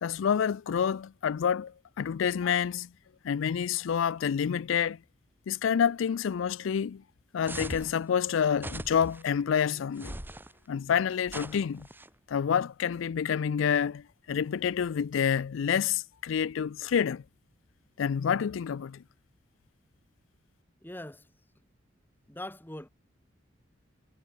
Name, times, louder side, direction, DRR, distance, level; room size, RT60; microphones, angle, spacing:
voice 1, 0.0-2.9 3.2-5.0 5.5-7.0 7.3-10.2 10.7-11.9 12.3-17.2 18.0-19.0, left 7 dB, 80° left, 0.4 m, -28 dB
sound 1, 7.4-7.9 8.6-9.2 10.0-10.5 11.3-12.1, right 1 dB, 10° right, 1.8 m, -40 dB
voice 2, 20.8-21.3 22.3-22.9, left 1 dB, 10° left, 1.5 m, -41 dB
head